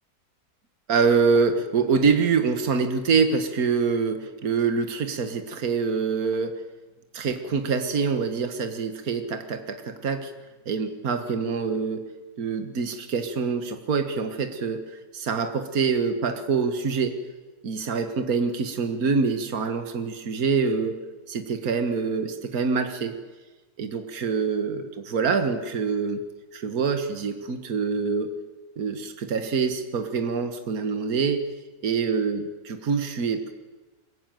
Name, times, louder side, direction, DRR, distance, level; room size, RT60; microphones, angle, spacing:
voice 1, 0.9-6.5 7.1-10.3 10.7-12.1 12.4-14.8 15.1-17.2 17.6-21.0 21.3-23.2 23.8-26.2 26.5-28.3 28.8-31.5 31.8-33.5, right 5 dB, 65° right, 8 dB, 2.0 m, -25 dB
23.5 x 21.0 x 9.3 m, 1.3 s
omnidirectional pair, 1.7 m